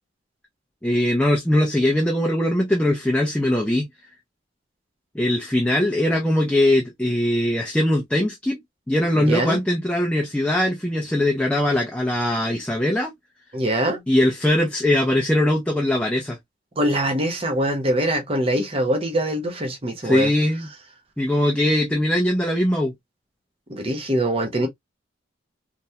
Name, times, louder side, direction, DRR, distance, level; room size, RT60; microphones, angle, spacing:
voice 1, 0.8-3.9 5.1-8.6 8.9-13.1 14.1-16.4 20.0-20.7 21.2-22.9, left 1 dB, 5° left, 0.6 m, -21 dB
voice 2, 9.1-9.6 13.5-14.0 16.8-20.3 23.7-24.7, right 1 dB, 30° right, 0.8 m, -23 dB
3.4 x 2.1 x 2.8 m
head